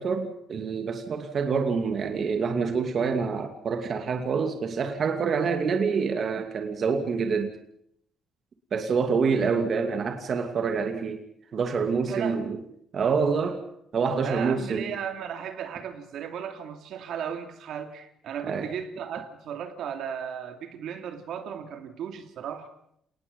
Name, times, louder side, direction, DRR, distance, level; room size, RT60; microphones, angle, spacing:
voice 1, 0.0-7.6 8.7-11.2 11.5-12.6 12.9-13.6 13.9-14.9 18.4-18.7, right 5 dB, 45° right, 6 dB, 2.6 m, -26 dB
voice 2, 12.1-12.4 14.2-22.7, right 8 dB, 70° right, 6 dB, 2.9 m, -35 dB
29.0 x 19.5 x 5.5 m, 0.72 s
cardioid pair, 135°, 0 cm